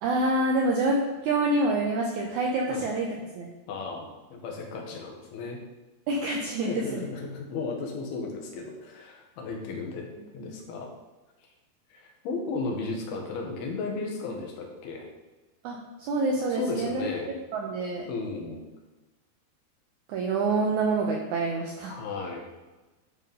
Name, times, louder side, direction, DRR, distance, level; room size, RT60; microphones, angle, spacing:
voice 1, 0.0-3.1 3.4-3.5 6.1-7.0 10.5-10.6 15.6-17.1 17.5-18.1 20.1-21.9, right 2 dB, 80° right, 0 dB, 1.7 m, -27 dB
voice 2, 3.7-5.6 6.6-10.1 10.3-10.9 11.9-15.1 16.5-17.3 18.1-18.6 21.9-22.4, left 3 dB, 75° left, 1 dB, 3.2 m, -35 dB
11.5 x 4.3 x 5.3 m, 1.2 s
omnidirectional pair, 4.6 m